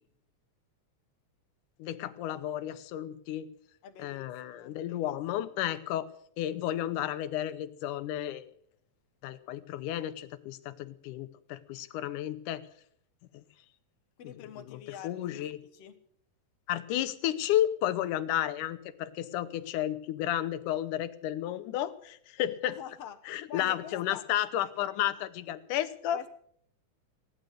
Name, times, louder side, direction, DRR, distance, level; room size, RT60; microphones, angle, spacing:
voice 1, 1.8-3.5 4.0-6.1 6.4-8.5 9.2-12.6 13.3-13.4 14.2-15.6 16.7-22.8 23.3-26.2, left 12 dB, 80° left, 12 dB, 2.4 m, -32 dB
voice 2, 3.8-4.8 14.2-15.4 15.7-16.0 22.7-23.2 23.5-24.2 26.1-26.3, left 9 dB, 60° left, 8 dB, 1.9 m, -45 dB
17.0 x 11.0 x 6.6 m, 0.65 s
omnidirectional pair, 3.6 m